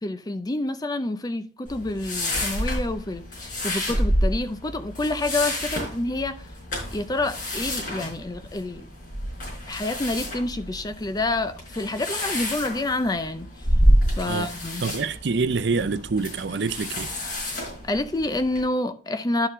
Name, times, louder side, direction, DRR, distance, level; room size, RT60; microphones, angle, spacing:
voice 1, 0.0-6.4 6.9-8.9 9.7-13.5 14.2-14.8 17.5-19.5, left 2 dB, 20° left, 0.5 m, -28 dB
sound 1, 1.7-18.6, equal, 50° left, 4.7 m, -28 dB
voice 2, 14.8-17.1, right 4 dB, 75° right, 0.6 m, -26 dB
11.5 x 4.6 x 3.6 m
head